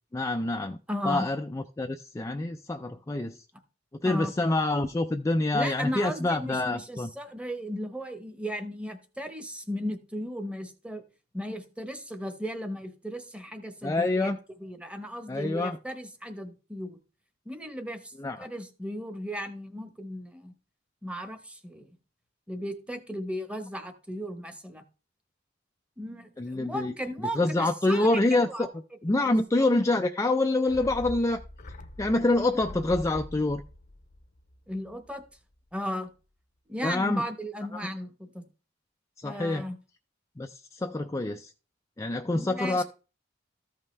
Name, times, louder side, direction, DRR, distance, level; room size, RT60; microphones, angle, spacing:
voice 1, 0.1-0.8 1.0-3.4 4.0-7.1 13.8-14.4 15.3-15.8 18.2-18.5 26.4-26.9 27.3-28.7 29.0-31.4 32.0-33.6 36.8-37.2 37.7-37.9 39.2-39.7 40.4-41.5 42.0-42.8, left 2 dB, 15° left, 0.4 m, -26 dB
voice 2, 0.9-1.3 4.0-4.3 5.5-11.0 11.3-14.3 14.6-17.0 17.4-18.1 18.4-20.5 21.0-21.9 22.5-24.8 26.0-28.7 29.1-29.3 34.7-35.2 35.7-36.1 36.7-38.4 39.2-39.7 42.3-42.8, equal, 5° right, 1.0 m, -36 dB
sound 1, 30.7-35.3 35.5-35.6, left 1 dB, 45° left, 0.7 m, -43 dB
14.0 x 5.4 x 3.2 m
head